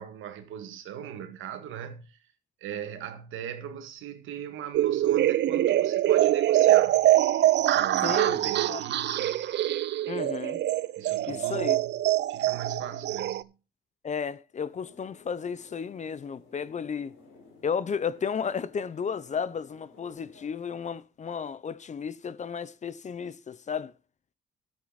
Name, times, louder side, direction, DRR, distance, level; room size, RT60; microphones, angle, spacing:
voice 1, 0.0-2.2 2.6-7.0 7.6-9.4 11.0-12.0 12.3-13.5, right 9 dB, 85° right, 1.8 m, -39 dB
sound 1, 4.7-13.4, right 13 dB, 60° right, 0.5 m, -24 dB
voice 2, 8.0-8.4 8.7-8.8 10.1-10.6 11.3-11.8 14.0-17.2 17.6-23.9, left 6 dB, 35° left, 0.7 m, -33 dB
sound 2, 14.6-20.5, left 4 dB, 85° left, 5.1 m, -55 dB
11.5 x 8.4 x 4.1 m
cardioid pair, 90°, 20 cm